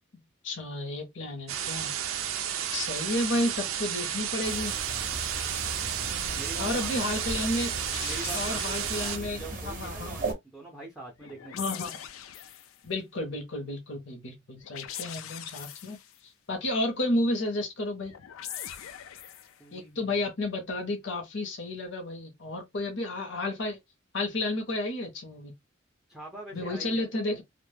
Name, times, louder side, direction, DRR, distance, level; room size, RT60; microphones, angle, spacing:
voice 1, 0.4-1.9 2.7-4.8 6.6-7.7 8.3-10.2 11.5-12.0 12.8-16.0 16.5-18.1 19.7-23.8 24.1-25.5 26.5-27.4, left 1 dB, 60° left, 0.7 m, -31 dB
sound 1, 1.5-9.2, right 9 dB, 85° right, 0.4 m, -32 dB
sound 2, 4.4-10.3, right 3 dB, 40° right, 0.6 m, -37 dB
sound 3, 5.3-5.9 7.7-9.3 11.2-12.8 14.6-16.2 18.0-19.6, left 10 dB, 90° left, 0.4 m, -42 dB
voice 2, 6.3-7.3 8.0-11.7 19.6-20.2 26.1-27.2, right 2 dB, ahead, 0.5 m, -44 dB
2.1 x 2.1 x 3.2 m
head